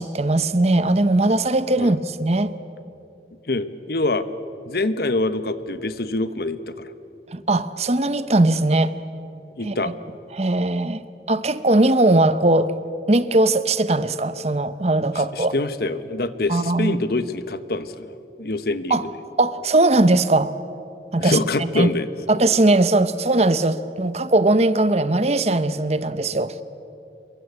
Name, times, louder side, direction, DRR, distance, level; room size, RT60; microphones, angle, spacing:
voice 1, 0.0-2.5 7.3-9.0 9.6-9.9 10.3-12.7 13.1-15.5 16.5-17.0 18.9-19.0 19.4-20.5 21.1-21.9 22.3-26.6, right 2 dB, 35° right, 13 dB, 0.8 m, -19 dB
voice 2, 3.5-4.3 4.7-6.9 9.6-9.9 15.2-18.1 18.4-19.1 21.2-22.1, left 2 dB, 55° left, 12 dB, 1.1 m, -25 dB
27.0 x 23.0 x 8.2 m, 2.8 s
head